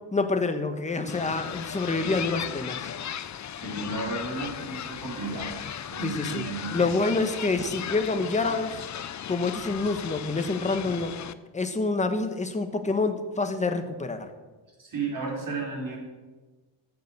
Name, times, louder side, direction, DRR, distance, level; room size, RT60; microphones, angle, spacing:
voice 1, 0.1-2.9 6.0-6.4 6.7-8.8 9.3-11.2 11.5-14.3, left 3 dB, 15° left, 7 dB, 1.1 m, -27 dB
sound 1, 1.1-11.3, left 9 dB, 40° left, 0.5 m, -36 dB
voice 2, 3.5-5.6 5.9-6.9 14.8-16.0, right 3 dB, 40° right, -3 dB, 4.5 m, -33 dB
14.0 x 7.1 x 6.6 m, 1.2 s
cardioid pair, 135°, 48 cm